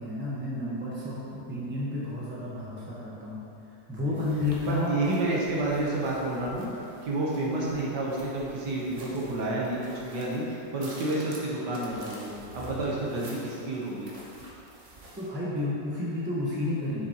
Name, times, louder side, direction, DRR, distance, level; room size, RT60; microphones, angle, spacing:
voice 1, 0.0-3.4 3.9-5.0 15.2-17.1, left 2 dB, 10° right, -7 dB, 1.0 m, -31 dB
sound 1, 4.1-15.3, right 1 dB, 45° right, 1.2 m, -48 dB
voice 2, 4.7-9.8 10.1-14.1, right 2 dB, 65° right, -5 dB, 1.7 m, -30 dB
7.3 x 7.0 x 3.0 m, 2.7 s
omnidirectional pair, 2.0 m